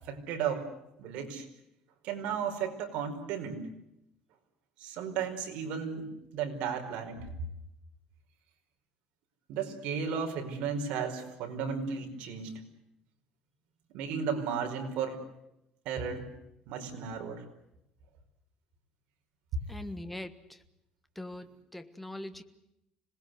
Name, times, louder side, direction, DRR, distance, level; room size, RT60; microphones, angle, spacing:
voice 1, 0.1-0.7 1.0-1.5 2.0-3.6 4.8-7.3 9.5-12.5 13.9-15.2 15.9-16.3 16.7-17.4, right 6 dB, 65° right, 4 dB, 5.0 m, -34 dB
voice 2, 19.7-20.6 21.1-22.4, left 1 dB, 5° left, 9 dB, 1.4 m, -42 dB
26.5 x 20.0 x 7.9 m, 0.83 s
cardioid pair, 165°, 2 cm